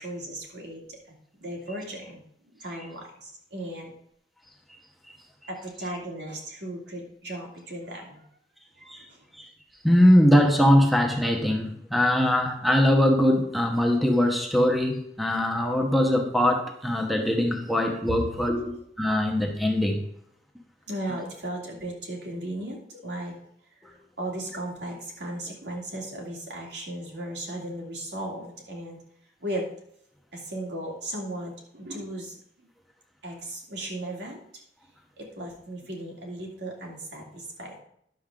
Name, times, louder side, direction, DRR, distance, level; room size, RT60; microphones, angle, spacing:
voice 1, 0.0-3.9 5.5-8.3 8.8-9.2 17.6-17.8 18.6-18.8 20.9-23.3 23.9-29.0 29.4-29.7 30.3-32.7 33.2-34.4 35.2-37.8, right 1 dB, 85° right, -1 dB, 2.4 m, -36 dB
voice 2, 9.8-20.0, equal, ahead, 3 dB, 0.9 m, -22 dB
10.5 x 7.0 x 3.7 m, 0.70 s
head